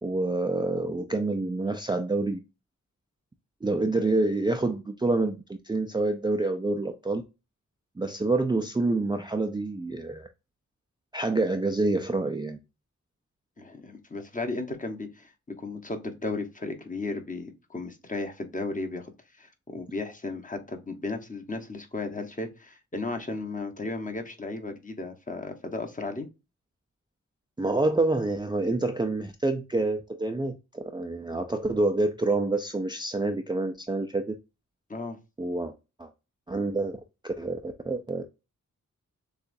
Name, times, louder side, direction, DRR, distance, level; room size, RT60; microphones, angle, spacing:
voice 1, 0.0-2.4 3.6-7.2 8.0-10.3 11.1-12.6 27.6-34.3 35.4-35.7 36.0-36.1 36.5-38.2, right 2 dB, 15° right, 0.4 m, -27 dB
voice 2, 13.6-15.3 15.6-19.1 19.4-26.3 34.9-35.2, left 3 dB, 25° left, 0.9 m, -35 dB
6.7 x 2.4 x 2.5 m
wide cardioid pair, 125°, 31 cm